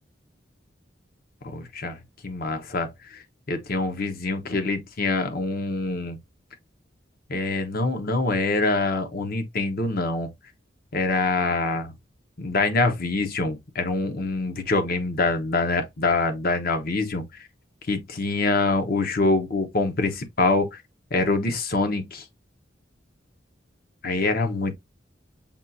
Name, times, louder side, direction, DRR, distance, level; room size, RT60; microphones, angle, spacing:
voice 1, 1.4-2.0 2.2-6.2 7.3-10.3 10.9-11.9 12.4-17.2 17.9-20.8 21.1-22.2 24.0-24.7, left 3 dB, 55° left, 0.9 m, -25 dB
7.2 x 2.4 x 2.6 m
head